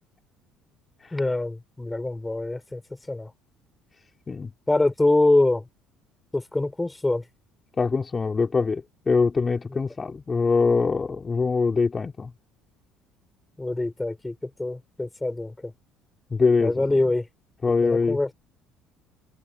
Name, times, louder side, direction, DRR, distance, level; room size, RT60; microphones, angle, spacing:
voice 1, 1.1-2.8 3.1-3.3 4.7-5.6 6.3-7.2 9.7-9.8 13.6-15.7 16.6-17.3 17.8-18.3, left 2 dB, 15° left, 6.3 m, -24 dB
voice 2, 7.8-12.3 16.3-16.9 17.6-18.2, left 4 dB, 30° left, 4.3 m, -23 dB
supercardioid pair, 80°, 0 cm